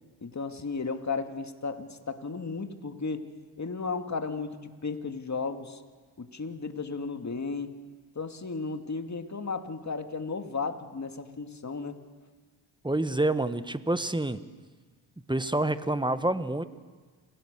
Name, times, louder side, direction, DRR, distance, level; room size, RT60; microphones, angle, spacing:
voice 1, 0.2-3.2 3.6-5.8 6.2-7.7 8.2-12.0, left 4 dB, 35° left, 7 dB, 2.3 m, -34 dB
voice 2, 12.8-14.4 15.3-16.6, right 2 dB, 10° right, 12 dB, 1.3 m, -27 dB
28.5 x 17.0 x 6.8 m, 1.4 s
supercardioid pair, 50°, 50 cm